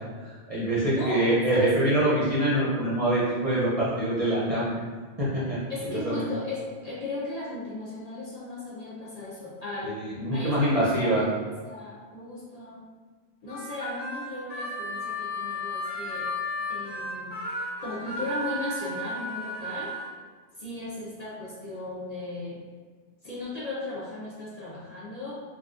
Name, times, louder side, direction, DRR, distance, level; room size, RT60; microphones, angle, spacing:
voice 1, 0.2-4.7 5.2-5.6 5.9-6.2 9.8-11.2, right 1 dB, 40° right, -8 dB, 0.7 m, -25 dB
voice 2, 0.9-2.1 5.7-10.0 10.3-11.4 11.6-12.8 13.4-16.3 16.7-17.3 17.8-19.9 20.6-22.6 23.2-25.3, left 2 dB, 40° left, -9 dB, 0.7 m, -36 dB
Harmonica, 13.5-20.0, left 1 dB, 10° left, 1.4 m, -34 dB
3.8 x 2.3 x 2.4 m, 1.5 s
omnidirectional pair, 1.1 m